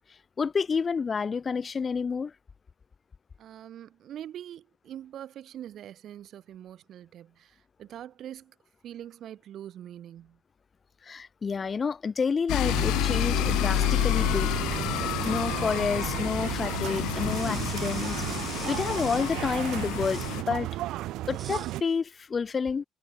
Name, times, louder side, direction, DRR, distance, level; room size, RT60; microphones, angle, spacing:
voice 1, 0.4-2.3 11.0-14.5 15.2-20.7 21.3-22.9, left 5 dB, 20° left, 1.8 m, -29 dB
voice 2, 3.4-8.6 8.8-10.4, right 11 dB, 45° right, 4.9 m, -43 dB
sound 1, 12.5-20.4, left 17 dB, 80° left, 1.6 m, -29 dB
sound 2, 12.6-21.8, right 16 dB, 65° right, 0.5 m, -34 dB
sound 3, 17.2-19.4 19.9-20.4 21.3-21.8, right 7 dB, 30° right, 1.2 m, -44 dB
cardioid pair, 180°, 0 cm